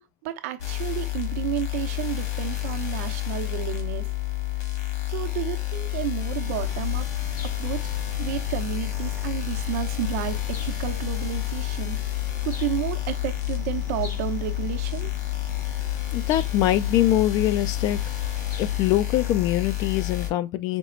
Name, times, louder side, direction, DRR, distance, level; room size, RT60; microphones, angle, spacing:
voice 1, 0.2-4.1 5.1-7.1 7.4-7.9 8.2-12.0 12.4-15.1, right 13 dB, 60° right, 0.8 m, -31 dB
sound 1, 0.6-20.3, left 17 dB, 65° left, 2.0 m, -29 dB
sound 2, 6.4-18.8, left 3 dB, 85° left, 1.4 m, -38 dB
voice 2, 16.1-18.0 18.6-20.8, left 13 dB, 40° left, 0.4 m, -23 dB
5.2 x 2.4 x 3.1 m
supercardioid pair, 125°, 9 cm